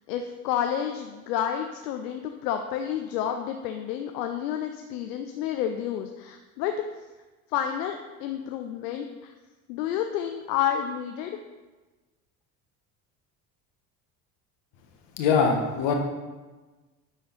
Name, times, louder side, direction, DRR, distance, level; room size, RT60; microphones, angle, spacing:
voice 1, 0.1-6.7 7.5-9.3 9.7-11.4, left 9 dB, 75° left, 5 dB, 0.6 m, -30 dB
voice 2, 15.2-16.0, left 5 dB, 60° left, 2 dB, 1.5 m, -22 dB
10.0 x 4.1 x 4.0 m, 1.2 s
hypercardioid pair, 60°, 49 cm